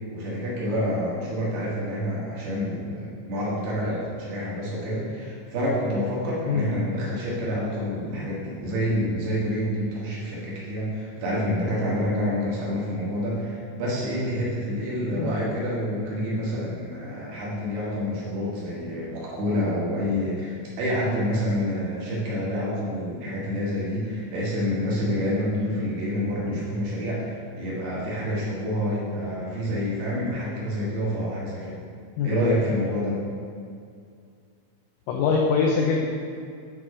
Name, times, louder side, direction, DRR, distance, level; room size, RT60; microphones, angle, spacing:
voice 1, 0.1-31.8 32.2-33.2, equal, 65° right, -6 dB, 2.8 m, -28 dB
voice 2, 35.1-36.1, left 5 dB, 90° left, 0 dB, 2.6 m, -23 dB
9.4 x 3.7 x 4.7 m, 2.3 s
omnidirectional pair, 6.0 m